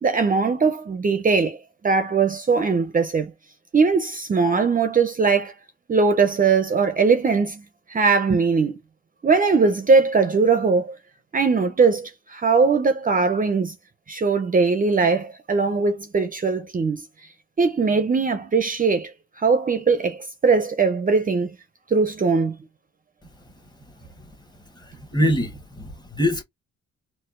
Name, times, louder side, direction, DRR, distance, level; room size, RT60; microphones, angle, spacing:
voice 1, 0.0-1.6 1.8-3.3 3.7-5.5 5.9-7.6 7.9-8.8 9.2-11.0 11.3-13.7 14.1-17.0 17.6-19.1 19.4-21.5 21.9-22.5, right 4 dB, 30° right, 0.6 m, -20 dB
voice 2, 24.8-26.4, equal, 15° left, 1.2 m, -24 dB
4.2 x 2.3 x 2.5 m
cardioid pair, 90°, 30 cm